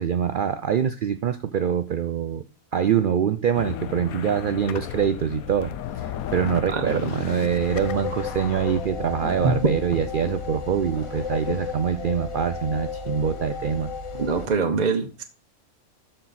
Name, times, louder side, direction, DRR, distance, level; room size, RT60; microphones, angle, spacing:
voice 1, 0.0-2.4 2.7-13.9, right 8 dB, 85° right, 11 dB, 0.4 m, -24 dB
sound 1, 3.5-12.0, left 10 dB, 85° left, 1.1 m, -36 dB
sound 2, 7.6-14.5, left 5 dB, 25° left, 0.8 m, -33 dB
voice 2, 14.2-15.2, right 4 dB, 35° right, 5 dB, 0.8 m, -23 dB
12.5 x 4.5 x 4.0 m, 0.33 s
omnidirectional pair, 1.5 m